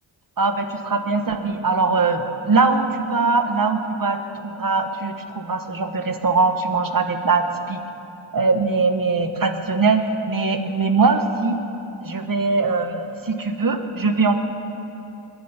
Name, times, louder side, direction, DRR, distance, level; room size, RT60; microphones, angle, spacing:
voice 1, 0.4-7.8 8.3-11.6 12.0-14.4, right 4 dB, 40° right, 7 dB, 1.4 m, -21 dB
22.0 x 8.3 x 5.8 m, 2.9 s
cardioid pair, 50°, 50 cm